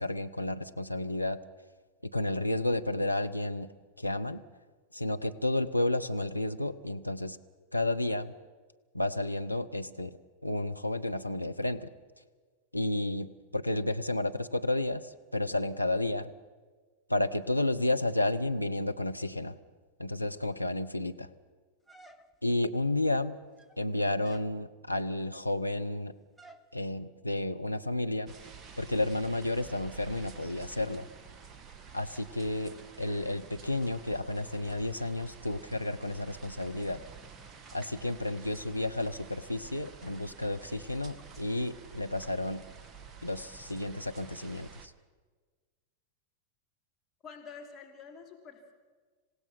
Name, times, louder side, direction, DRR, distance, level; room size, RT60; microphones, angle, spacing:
voice 1, 0.0-1.4 2.0-4.4 4.9-7.4 7.7-8.3 8.9-10.2 10.4-11.9 12.7-16.3 17.1-19.6 20.0-21.3 22.4-23.4 23.8-26.1 26.7-28.3 28.8-31.1 31.9-37.0 37.7-42.7 43.2-44.9, left 1 dB, 90° left, 7 dB, 0.7 m, -31 dB
sound 1, 21.9-22.6 23.4-23.9 24.2-24.6 26.4-26.7, equal, 5° left, 1.1 m, -54 dB
sound 2, 28.3-44.9, right 6 dB, 25° right, 1.5 m, -50 dB
voice 2, 47.2-48.7, left 5 dB, 20° left, 1 dB, 3.4 m, -48 dB
27.5 x 16.5 x 5.9 m, 1.4 s
figure-of-eight pair, 90°, 0 cm